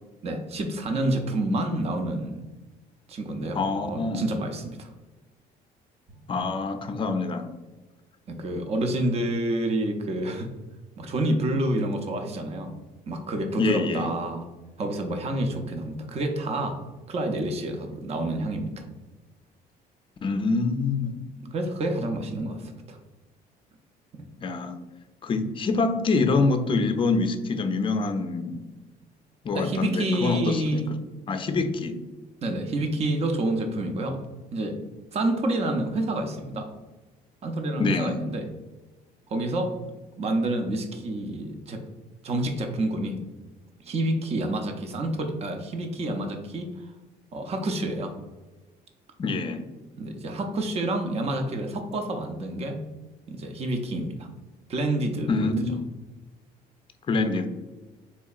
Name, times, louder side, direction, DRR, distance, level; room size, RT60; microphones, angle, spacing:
voice 1, 0.2-2.4 3.1-4.9 8.3-10.5 11.0-12.8 13.1-14.5 14.8-16.8 17.1-18.8 21.4-23.0 24.1-24.3 29.5-30.9 32.4-34.2 34.5-34.8 35.1-36.7 37.4-38.5 39.3-39.8 40.2-41.8 42.2-43.2 43.8-46.9 47.3-48.1 50.0-52.9 53.3-54.3 54.7-55.5, right 1 dB, 40° right, 5 dB, 0.6 m, -28 dB
voice 2, 3.5-4.2 6.3-7.5 13.6-14.1 20.2-21.1 24.4-24.8 25.2-28.6 29.4-31.0 31.3-32.0 37.8-38.2 49.2-49.6 55.3-55.8 57.1-57.5, left 3 dB, 30° left, 8 dB, 0.4 m, -25 dB
4.3 x 2.8 x 2.3 m, 1.2 s
cardioid pair, 110°, 17 cm